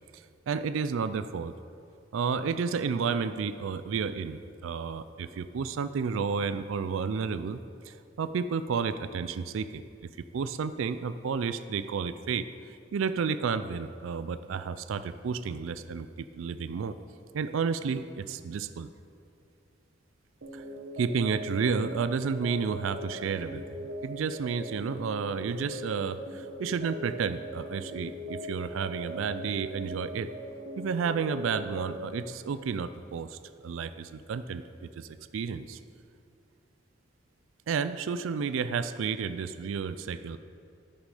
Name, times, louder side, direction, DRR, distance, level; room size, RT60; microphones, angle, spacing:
voice 1, 0.1-1.5 2.1-7.6 7.9-9.8 10.3-12.5 12.9-17.0 17.3-18.9 20.5-20.6 21.0-30.3 30.8-35.8 37.7-40.4, right 5 dB, 85° right, 12 dB, 0.4 m, -31 dB
sound 1, 20.4-32.1, equal, 60° right, 0.9 m, -40 dB
10.5 x 6.6 x 4.9 m, 2.5 s
head